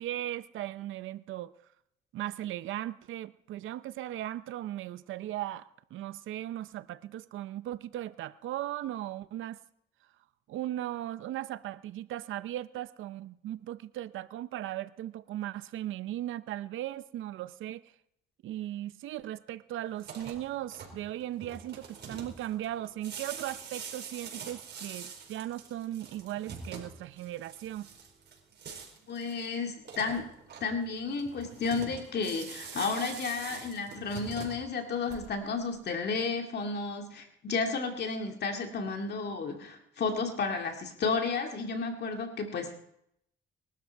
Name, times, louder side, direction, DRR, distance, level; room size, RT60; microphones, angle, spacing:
voice 1, 0.0-1.5 2.1-9.6 10.5-17.9 18.4-27.9, right 13 dB, 80° right, 15 dB, 0.7 m, -37 dB
sound 1, 19.9-35.6, right 5 dB, 60° right, 4.8 m, -45 dB
voice 2, 29.1-30.3 30.6-42.7, left 4 dB, 55° left, 3 dB, 2.3 m, -32 dB
21.5 x 12.5 x 4.6 m, 0.75 s
cardioid pair, 90°, 20 cm